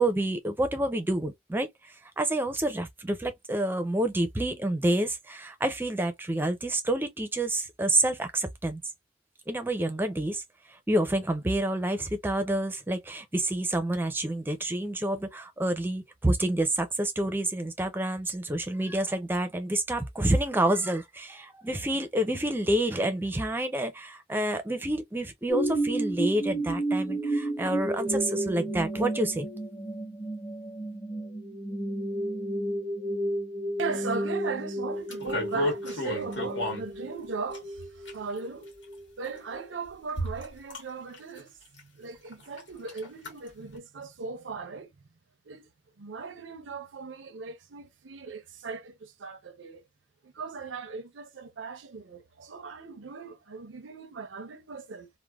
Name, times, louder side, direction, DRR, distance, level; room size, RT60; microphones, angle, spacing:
voice 1, 0.0-8.8 9.5-10.4 10.7-29.5, right 1 dB, 10° right, 0.4 m, -28 dB
sound 1, 25.5-39.0 39.5-39.6, right 1 dB, 20° left, 0.8 m, -32 dB
voice 2, 33.8-38.7 39.2-44.9 45.4-45.7 46.0-49.8 50.2-55.1, right 4 dB, 90° right, 0.6 m, -38 dB
sound 2, 35.1-36.8 37.5-38.4 39.3-39.4 40.1-40.8 41.1-41.4 41.8-41.9 42.3-42.6 42.9-43.3 43.7-43.8, left 1 dB, 75° left, 1.6 m, -32 dB
3.2 x 2.1 x 2.3 m
head